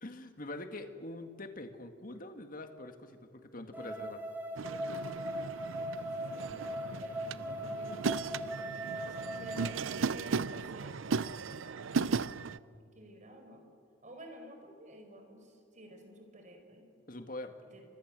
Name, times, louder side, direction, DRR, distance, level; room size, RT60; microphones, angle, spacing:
voice 1, 0.0-4.2 17.1-17.6, left 2 dB, 45° left, 7 dB, 2.1 m, -44 dB
sound 1, 3.7-9.7, equal, 10° right, 2.8 m, -39 dB
voice 2, 3.8-4.2 5.7-12.2 12.9-13.6 14.0-16.9 17.7-17.8, right 1 dB, 40° right, 4 dB, 5.1 m, -53 dB
sound 2, 4.6-12.6, right 5 dB, 90° right, 0.6 m, -36 dB
sound 3, 6.5-12.8, left 2 dB, 5° left, 1.4 m, -58 dB
30.0 x 25.5 x 7.7 m, 2.4 s
head